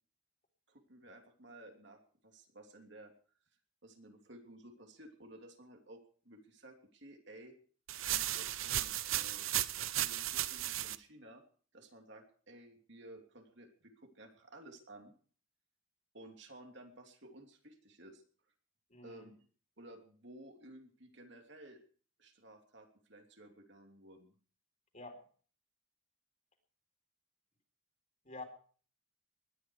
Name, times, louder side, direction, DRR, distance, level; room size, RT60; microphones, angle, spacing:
voice 1, 0.7-3.1 3.8-7.5 8.0-9.5 9.9-11.4 11.7-15.1 16.1-18.2 19.0-19.4 19.8-21.8 22.2-24.3, right 1 dB, 55° right, 3 dB, 3.0 m, -55 dB
sound 1, 7.9-11.0, right 13 dB, 80° right, 0.8 m, -35 dB
voice 2, 18.9-19.3 24.9-25.2 28.2-28.4, left 2 dB, 35° left, 3 dB, 4.1 m, -47 dB
20.0 x 12.0 x 4.8 m, 0.43 s
head